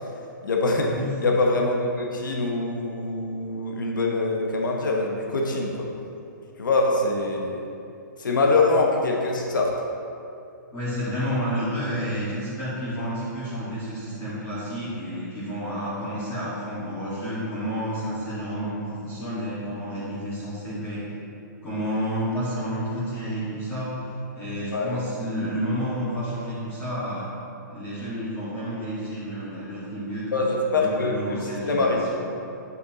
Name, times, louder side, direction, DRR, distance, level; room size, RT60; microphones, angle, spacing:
voice 1, 0.4-0.9 1.2-5.9 6.6-7.6 8.2-9.7 24.7-24.9 30.3-31.4 31.7-32.1, left 2 dB, 90° left, 0 dB, 1.1 m, -24 dB
voice 2, 10.7-21.0 21.6-24.0 24.3-27.3 27.7-32.2, equal, 20° left, -11 dB, 1.8 m, -30 dB
8.8 x 6.7 x 3.0 m, 2.6 s
hypercardioid pair, 155°, 10 cm